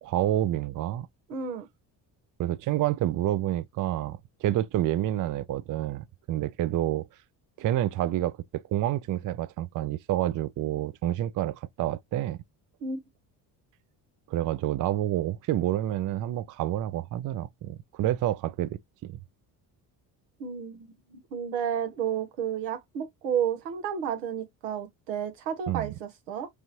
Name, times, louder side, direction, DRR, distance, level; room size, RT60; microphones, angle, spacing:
voice 1, 0.0-1.1 2.4-7.1 7.6-12.4 14.3-19.1 25.7-25.9, right 13 dB, 40° right, 0.5 m, -28 dB
voice 2, 1.3-1.7 12.8-13.0 20.4-26.5, right 8 dB, 85° right, 1.2 m, -32 dB
4.7 x 2.6 x 3.0 m
hypercardioid pair, 60°, 49 cm